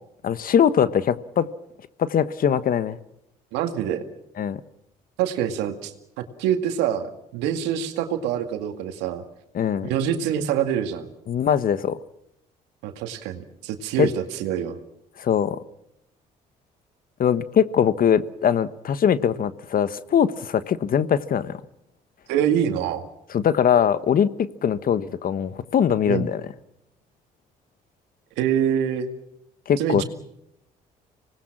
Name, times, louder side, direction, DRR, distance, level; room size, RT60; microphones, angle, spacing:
voice 1, 0.2-1.5 2.0-3.0 4.4-4.6 9.5-9.9 11.3-12.0 14.0-14.1 15.2-15.6 17.2-21.6 23.3-24.3 24.6-26.4 29.7-30.0, left 8 dB, 55° left, 14 dB, 1.3 m, -21 dB
voice 2, 3.5-4.0 5.2-9.2 9.8-11.1 12.8-14.8 22.3-23.1 26.1-26.3 28.4-29.1 29.8-30.0, right 9 dB, 85° right, 7 dB, 2.1 m, -25 dB
26.0 x 19.5 x 6.1 m, 0.81 s
supercardioid pair, 65°, 17 cm